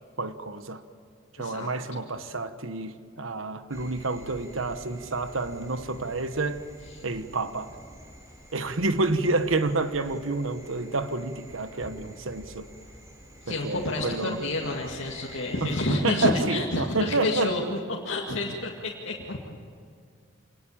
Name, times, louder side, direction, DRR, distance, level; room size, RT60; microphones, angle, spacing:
voice 1, 0.2-0.8 1.4-6.6 7.0-7.7 8.5-12.7 13.5-14.4 15.6-17.6, right 3 dB, 80° right, 1.3 m, -29 dB
voice 2, 1.4-1.7 6.9-7.0 13.4-17.8 18.0-19.5, left 2 dB, 75° left, 2.2 m, -29 dB
sound 1, 3.7-15.9, equal, 15° right, 4.7 m, -48 dB
26.5 x 19.5 x 8.7 m
head